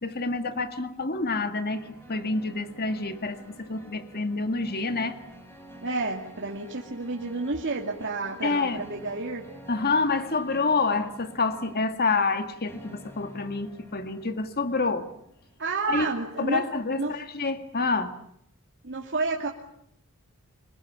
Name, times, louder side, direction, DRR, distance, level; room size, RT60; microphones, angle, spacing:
voice 1, 0.0-5.2 8.4-8.9 9.7-15.1 15.9-18.2, left 3 dB, 45° left, 8 dB, 2.0 m, -28 dB
sound 1, 1.7-16.9, equal, 10° left, 6.7 m, -50 dB
voice 2, 5.8-9.5 15.6-16.7 17.0-17.2 18.8-19.5, right 3 dB, 55° right, 0 dB, 2.5 m, -30 dB
26.0 x 22.0 x 8.6 m, 0.72 s
head